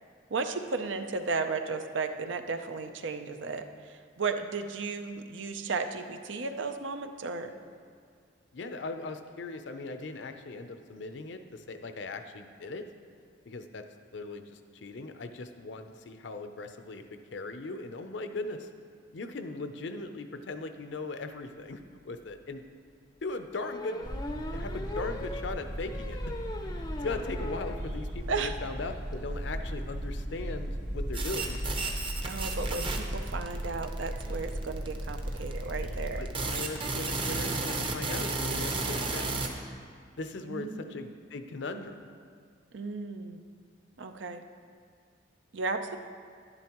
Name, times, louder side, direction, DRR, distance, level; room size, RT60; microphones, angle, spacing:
voice 1, 0.3-7.5 28.3-28.5 32.2-36.2 40.4-41.1 42.7-43.4 44.0-44.4 45.5-46.0, right 4 dB, 80° right, 7 dB, 0.6 m, -34 dB
voice 2, 8.5-12.9 13.4-13.9 14.1-18.7 19.1-22.7 23.2-26.2 27.0-31.6 36.2-39.4 40.2-42.0, left 3 dB, 70° left, 8 dB, 0.6 m, -39 dB
sound 1, 21.8-21.9 22.3-22.4 23.6-27.9 28.2-28.3 28.6-28.7 28.9-29.1, left 2 dB, 20° left, 0.5 m, -40 dB
sound 2, 24.0-36.2, equal, 40° right, 1.1 m, -36 dB
sound 3, 31.1-39.5, right 3 dB, 25° right, 0.7 m, -33 dB
11.0 x 10.5 x 3.0 m, 2.1 s
head